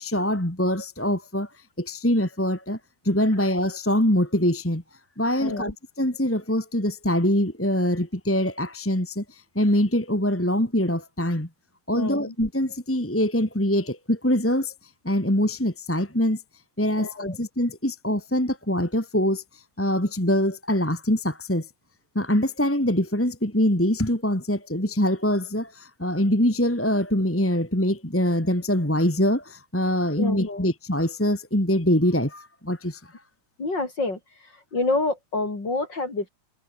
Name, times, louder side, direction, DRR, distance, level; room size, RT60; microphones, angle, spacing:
voice 1, 0.0-1.5 1.8-2.8 3.0-4.8 5.2-5.7 6.0-11.5 11.9-14.7 15.0-16.4 16.8-19.4 19.8-21.7 22.1-33.1, left 1 dB, 5° left, 2.2 m, -24 dB
voice 2, 5.4-5.7 11.9-12.3 17.0-17.4 30.2-30.7 33.6-34.2 34.7-36.3, left 3 dB, 35° left, 5.5 m, -27 dB
omnidirectional pair, 3.3 m